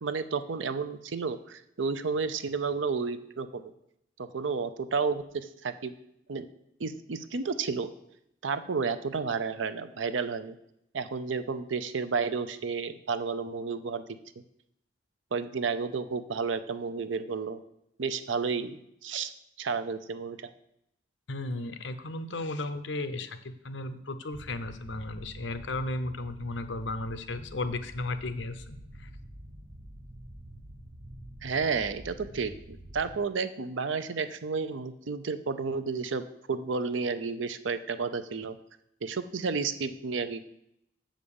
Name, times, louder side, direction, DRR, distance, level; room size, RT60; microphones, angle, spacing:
voice 1, 0.0-3.7 4.2-5.9 6.3-6.4 6.8-7.9 8.4-10.5 10.9-14.0 15.3-17.6 18.0-19.3 19.6-20.5 31.4-38.6 39.0-40.4, right 5 dB, 80° right, 11 dB, 0.6 m, -31 dB
voice 2, 21.3-29.1, left 2 dB, 70° left, 10 dB, 0.7 m, -35 dB
sound 1, 24.3-33.2, right 1 dB, 25° right, 0.7 m, -47 dB
7.4 x 5.2 x 7.0 m, 0.77 s
head